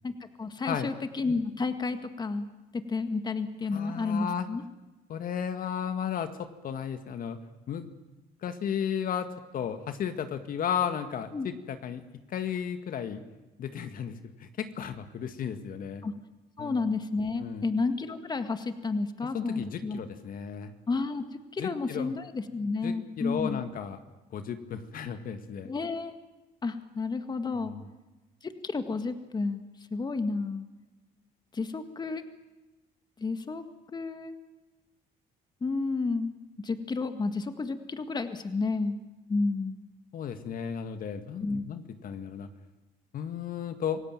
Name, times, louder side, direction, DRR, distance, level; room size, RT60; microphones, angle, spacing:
voice 1, 0.0-2.5 2.7-4.6 11.3-11.5 16.0-16.1 16.6-20.0 20.9-23.6 25.6-26.1 26.6-27.7 28.4-29.6 29.9-30.7 31.5-32.2 33.2-34.4 35.6-36.3 36.6-39.0 39.3-39.8 41.4-41.7, left 3 dB, 25° left, 9 dB, 1.8 m, -31 dB
voice 2, 3.7-4.5 5.1-6.3 6.6-7.4 7.7-7.9 8.4-9.3 9.5-12.0 12.3-13.2 13.6-16.0 16.6-16.8 17.4-17.6 19.3-20.7 21.6-22.1 22.8-24.0 24.3-25.7 27.5-27.9 40.1-42.5 43.1-44.0, left 8 dB, 55° left, 9 dB, 2.0 m, -34 dB
27.0 x 17.0 x 9.0 m, 1.1 s
cardioid pair, 110°, 17 cm